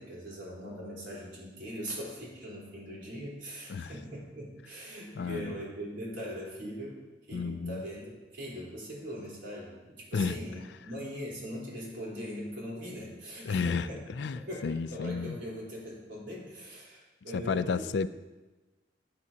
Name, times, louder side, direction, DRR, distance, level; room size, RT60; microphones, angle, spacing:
voice 1, 0.0-7.0 7.3-14.0 14.3-18.0, equal, 80° right, -5 dB, 3.7 m, -41 dB
voice 2, 5.1-5.6 7.3-7.8 10.1-10.4 13.5-15.4 17.3-18.1, left 5 dB, 65° left, 14 dB, 0.4 m, -32 dB
14.0 x 8.8 x 2.8 m, 1.2 s
head